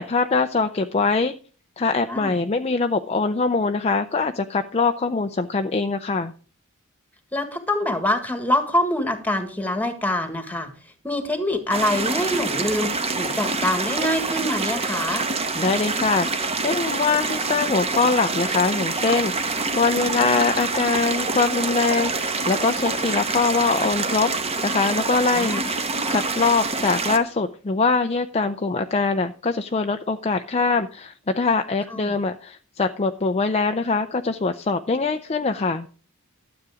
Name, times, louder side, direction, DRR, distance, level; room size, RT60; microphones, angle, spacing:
voice 1, 0.0-1.4 1.8-6.3 15.6-24.3 24.6-35.9, left 4 dB, 30° left, 7 dB, 0.5 m, -23 dB
voice 2, 7.3-10.7 11.0-15.3 25.3-25.7 31.9-32.2, left 1 dB, 5° left, 8 dB, 1.7 m, -25 dB
sound 1, 11.7-27.2, right 3 dB, 25° right, 1.1 m, -26 dB
12.5 x 8.1 x 4.9 m, 0.39 s
head